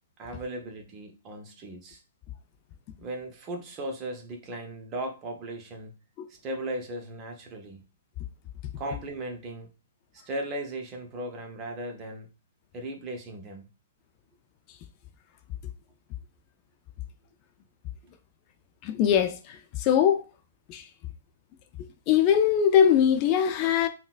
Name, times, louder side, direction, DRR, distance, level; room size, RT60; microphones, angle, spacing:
voice 1, 0.2-2.0 3.0-5.9 6.4-7.8 8.8-9.7 10.1-12.3 12.7-13.7, right 1 dB, 30° right, 0.8 m, -37 dB
voice 2, 18.8-20.2 20.7-20.9 22.1-23.9, left 9 dB, 35° left, 0.3 m, -22 dB
3.7 x 2.2 x 2.4 m
hypercardioid pair, 125°, 0 cm